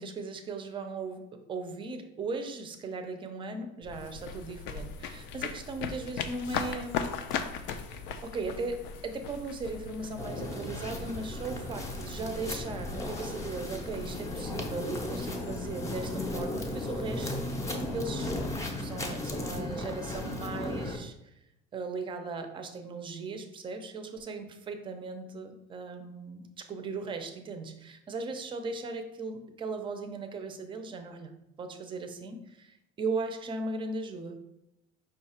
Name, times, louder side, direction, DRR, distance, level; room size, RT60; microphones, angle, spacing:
voice 1, 0.0-18.4 18.7-21.4 21.7-31.3 31.6-34.4, right 3 dB, 25° right, 6 dB, 0.5 m, -38 dB
sound 1, 3.8-19.0, left 6 dB, 70° left, 0.5 m, -40 dB
sound 2, 10.2-21.0, left 1 dB, 15° left, 0.6 m, -35 dB
5.1 x 2.4 x 4.3 m, 0.85 s
cardioid pair, 140°, 19 cm